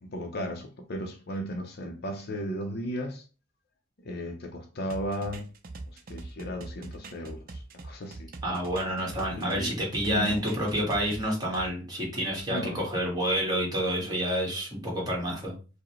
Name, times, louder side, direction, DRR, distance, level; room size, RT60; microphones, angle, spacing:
voice 1, 0.0-3.2 4.0-5.5 6.1-8.3 9.3-9.7 10.0-10.4 12.5-12.8, equal, 55° left, 0.6 m, -35 dB
sound 1, 4.9-9.6 9.9-11.7, right 2 dB, 45° right, 0.5 m, -42 dB
voice 2, 8.4-15.5, equal, 20° right, 1.6 m, -29 dB
4.7 x 2.1 x 3.1 m
head